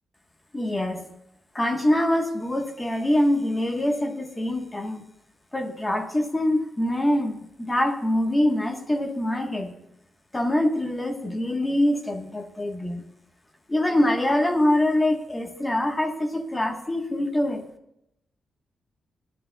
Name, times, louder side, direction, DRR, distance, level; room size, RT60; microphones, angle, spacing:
voice 1, 0.5-1.0 1.5-5.0 5.5-9.7 10.3-13.0 13.7-17.6, left 1 dB, 15° left, 4 dB, 1.3 m, -24 dB
19.5 x 11.0 x 2.3 m, 0.80 s
wide cardioid pair, 135°, 0 cm